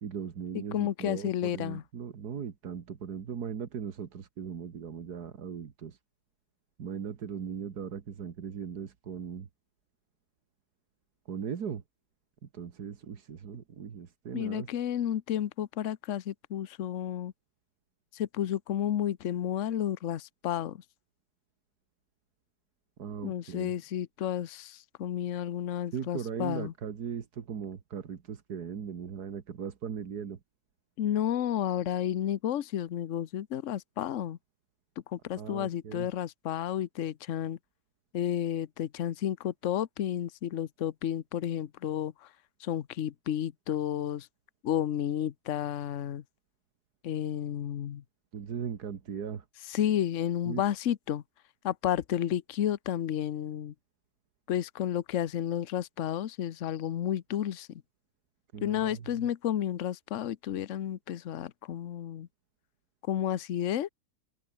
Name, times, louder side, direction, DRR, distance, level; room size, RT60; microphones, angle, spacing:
voice 1, 0.0-6.0 6.8-9.5 11.3-11.8 12.4-14.7 23.0-23.7 25.9-30.4 35.4-36.1 48.3-49.5 50.5-50.7 58.5-59.3, right 7 dB, 85° right, 2.1 m, -38 dB
voice 2, 0.5-1.8 14.3-17.3 18.1-20.8 23.2-26.7 31.0-34.4 35.1-37.6 38.1-42.3 42.6-44.3 44.6-46.2 47.0-48.0 49.7-51.2 51.6-53.7 54.5-57.8 58.6-62.3 63.1-63.9, left 10 dB, 55° left, 1.1 m, -31 dB
omnidirectional pair, 1.6 m